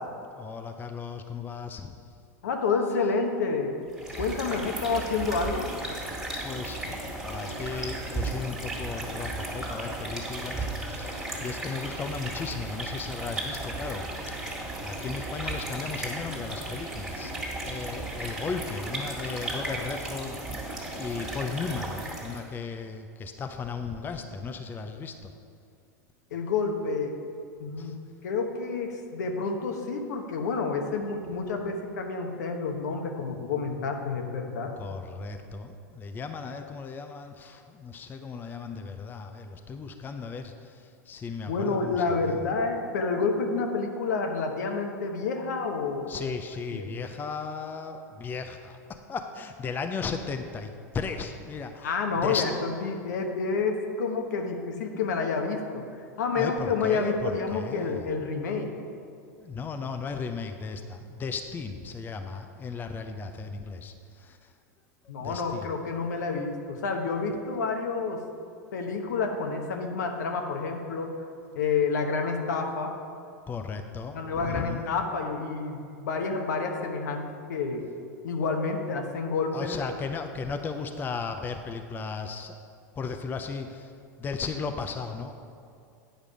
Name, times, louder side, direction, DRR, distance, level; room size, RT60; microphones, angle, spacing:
voice 1, 0.2-2.0 4.1-4.3 4.6-4.7 6.4-14.5 14.8-17.4 17.7-20.4 21.0-25.3 27.8-27.9 34.8-42.5 46.1-51.9 52.2-52.5 56.3-58.1 59.4-64.5 65.2-65.7 73.5-74.9 79.5-82.6 83.0-83.9 84.2-85.3, left 5 dB, 20° left, 6 dB, 0.5 m, -36 dB
voice 2, 2.4-3.8 4.2-5.7 26.3-27.2 27.6-34.7 41.5-46.3 46.7-46.8 51.8-55.8 56.2-58.7 65.1-68.2 68.7-71.1 71.5-72.9 74.1-77.9 78.2-79.8, left 4 dB, 80° left, 4 dB, 1.0 m, -29 dB
sound 1, 3.9-22.5, right 2 dB, 5° right, 1.9 m, -35 dB
9.1 x 5.1 x 5.0 m, 2.4 s
hypercardioid pair, 110°, 9 cm